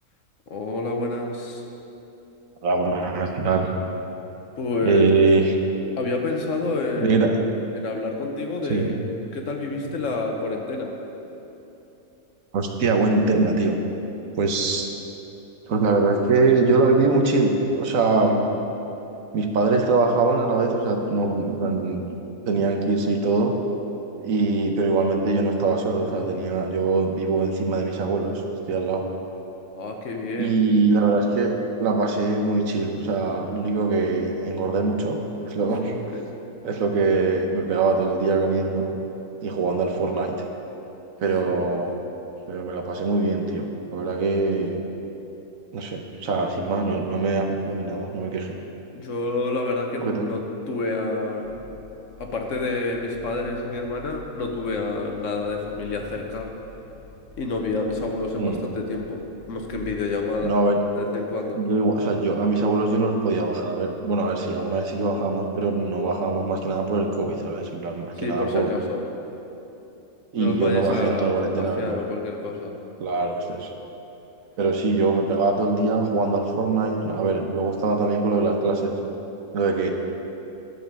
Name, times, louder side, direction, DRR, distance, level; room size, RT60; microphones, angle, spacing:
voice 1, 0.5-1.6 4.6-5.1 6.0-7.2 7.7-8.9 9.3-10.9 29.7-30.6 41.4-41.6 48.9-50.4 50.7-51.5 52.2-56.5 57.4-59.2 59.5-60.5 61.0-61.6 68.2-69.0 70.4-72.7, left 3 dB, 65° left, 2 dB, 1.3 m, -28 dB
voice 2, 2.6-3.7 4.8-5.5 7.0-7.3 8.7-9.0 12.5-13.8 14.4-14.9 15.7-18.4 19.3-22.2 22.4-23.6 24.2-28.4 28.7-29.1 30.4-35.2 35.5-36.0 36.6-38.9 39.4-40.3 41.2-41.9 42.5-44.8 45.7-48.6 50.0-50.3 58.4-58.6 60.4-60.8 61.5-68.7 70.3-72.0 73.0-73.7 74.6-79.0 79.5-79.9, right 3 dB, 70° right, 3 dB, 1.3 m, -23 dB
sound 1, 51.4-60.6, left 3 dB, 25° left, 1.7 m, -47 dB
11.0 x 5.5 x 7.4 m, 3.0 s
omnidirectional pair, 1.5 m